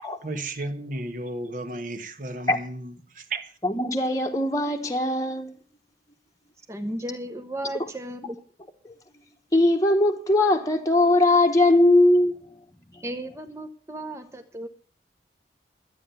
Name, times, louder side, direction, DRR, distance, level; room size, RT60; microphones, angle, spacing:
voice 1, 0.2-3.6, right 2 dB, 50° right, 1.3 m, -34 dB
voice 2, 3.6-5.5 8.8-8.9 9.5-12.4 12.9-13.0, left 1 dB, 20° left, 1.1 m, -20 dB
voice 3, 6.7-8.4 13.0-14.7, right 1 dB, 15° right, 0.8 m, -34 dB
12.0 x 9.0 x 6.8 m
head